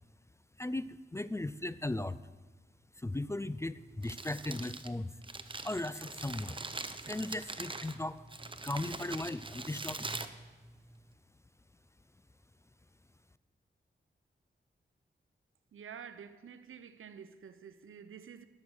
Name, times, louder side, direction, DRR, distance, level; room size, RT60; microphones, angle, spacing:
voice 1, 0.6-2.2 3.0-5.1 5.6-6.6 7.1-8.2 8.6-10.1, left 2 dB, 15° left, 0.4 m, -37 dB
Crumpling crinkling, 3.8-11.1, right 3 dB, 25° right, 0.7 m, -43 dB
voice 2, 15.7-18.5, right 7 dB, 80° right, 0.6 m, -49 dB
12.0 x 6.4 x 6.2 m
cardioid pair, 45°, 21 cm